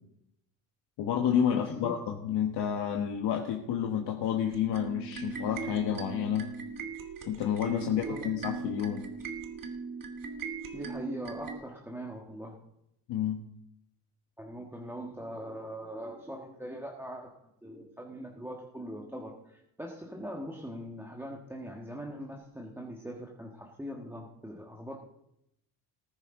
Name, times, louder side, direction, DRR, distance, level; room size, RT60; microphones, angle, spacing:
voice 1, 1.0-6.5 7.3-9.1 13.1-13.4, left 9 dB, 75° left, 2 dB, 1.5 m, -30 dB
voice 2, 1.5-2.0 7.9-8.2 10.7-12.6 14.4-17.3 17.6-25.0, equal, 5° right, -1 dB, 1.5 m, -41 dB
sound 1, 4.4-11.6, right 5 dB, 50° right, 1.6 m, -39 dB
19.0 x 9.7 x 3.8 m, 0.79 s
cardioid pair, 110°, 41 cm